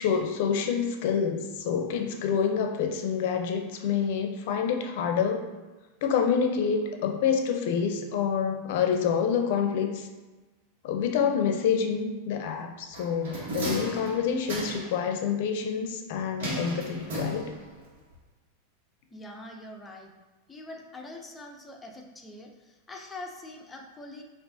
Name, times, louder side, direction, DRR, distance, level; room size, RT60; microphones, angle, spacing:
voice 1, 0.0-5.5 6.0-10.1 10.8-17.5, left 7 dB, 65° left, 5 dB, 0.5 m, -27 dB
sound 1, 12.9-15.0 16.4-17.8 18.1-18.2, right 1 dB, 75° right, 1.3 m, -35 dB
voice 2, 19.1-20.1 20.5-24.2, left 2 dB, 15° left, 1 dB, 0.5 m, -43 dB
4.5 x 2.5 x 2.7 m, 1.2 s
supercardioid pair, 135°, 0 cm